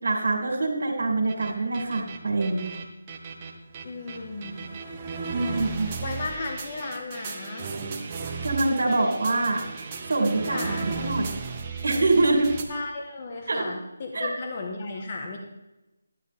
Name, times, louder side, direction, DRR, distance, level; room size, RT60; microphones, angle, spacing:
voice 1, 0.0-2.7 5.3-5.9 8.4-9.6 10.1-11.4 11.8-12.5 13.5-13.6 14.1-14.3, right 2 dB, 65° right, -1 dB, 3.0 m, -25 dB
sound 1, 1.3-12.6, right 5 dB, 25° right, 1.2 m, -35 dB
voice 2, 3.8-4.6 5.2-7.7 10.4-10.9 12.7-15.4, left 3 dB, 35° left, 2 dB, 1.8 m, -35 dB
12.5 x 10.5 x 3.7 m, 0.96 s
figure-of-eight pair, 165°, 0 cm